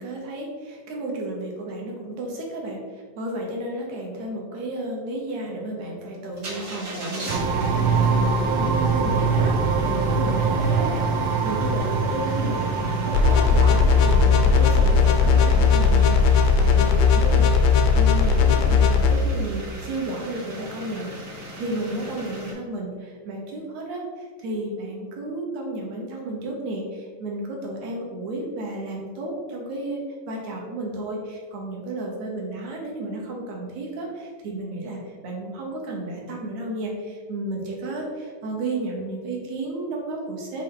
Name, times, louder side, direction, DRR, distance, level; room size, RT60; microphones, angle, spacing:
voice 1, 0.0-40.6, right 1 dB, 65° right, -1 dB, 2.0 m, -32 dB
sound 1, 6.3-22.5, right 1 dB, 40° right, 1.6 m, -38 dB
sound 2, 7.3-17.8, right 4 dB, 80° right, 2.2 m, -25 dB
sound 3, 13.1-19.1, left 5 dB, 85° left, 1.7 m, -17 dB
6.2 x 4.1 x 3.9 m, 1.5 s
omnidirectional pair, 4.0 m